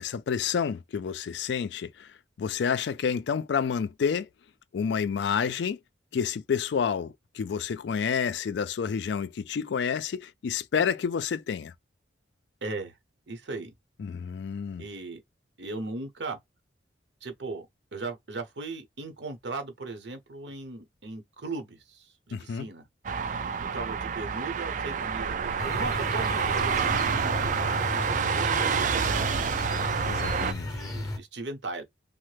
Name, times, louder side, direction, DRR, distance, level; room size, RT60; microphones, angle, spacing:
voice 1, 0.0-2.1 2.4-4.3 4.7-5.8 6.1-11.7 14.0-14.8 22.3-22.7 30.1-30.7, left 6 dB, 65° left, 0.3 m, -29 dB
voice 2, 12.6-13.0 13.3-13.7 14.8-15.2 15.6-16.4 17.2-17.7 17.9-22.8 23.7-27.1 27.4-29.5 30.7-31.8, right 3 dB, 70° right, 0.9 m, -38 dB
sound 1, 23.0-30.5, right 6 dB, 40° right, 0.3 m, -28 dB
sound 2, 25.6-31.2, left 1 dB, 20° left, 0.6 m, -34 dB
3.1 x 2.1 x 3.2 m
head